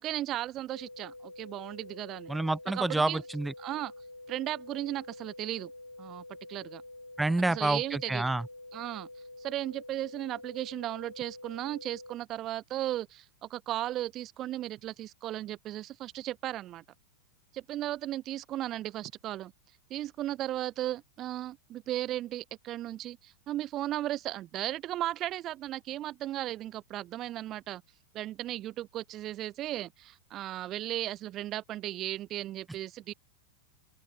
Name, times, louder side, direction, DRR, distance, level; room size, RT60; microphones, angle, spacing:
voice 1, 0.0-2.3 2.7-3.2 3.6-3.9 4.3-5.7 6.0-6.2 6.5-6.8 7.5-8.3 8.7-9.1 9.4-16.8 17.5-19.5 19.9-27.8 28.1-33.1, right 14 dB, 35° right, 2.1 m, -36 dB
sound 1, 0.7-12.1, left 2 dB, 85° left, 0.9 m, -48 dB
voice 2, 2.3-3.5 7.2-8.5, right 2 dB, 5° right, 0.5 m, -28 dB
open air
figure-of-eight pair, 90°, 0 cm